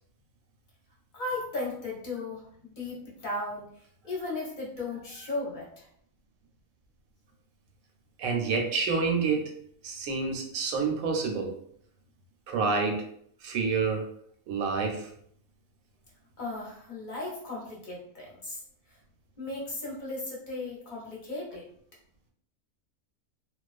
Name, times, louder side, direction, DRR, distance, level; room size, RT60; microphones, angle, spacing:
voice 1, 1.1-5.9 16.4-18.6 18.9-19.0 19.4-21.7, left 2 dB, 45° left, -4 dB, 0.7 m, -36 dB
voice 2, 8.2-9.5 9.8-11.5 12.5-13.1 13.4-14.1 14.5-15.1, right 4 dB, 80° right, 2 dB, 1.0 m, -28 dB
2.3 x 2.2 x 2.4 m, 0.64 s
omnidirectional pair, 1.4 m